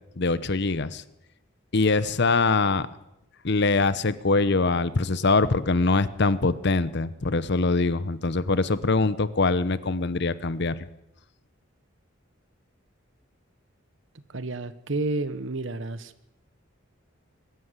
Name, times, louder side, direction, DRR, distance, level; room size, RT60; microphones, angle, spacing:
voice 1, 0.2-1.0 1.7-2.9 3.4-10.9, left 3 dB, 60° left, 15 dB, 0.9 m, -23 dB
voice 2, 14.3-16.1, right 2 dB, 70° right, 14 dB, 1.2 m, -30 dB
22.0 x 12.5 x 9.7 m, 0.90 s
head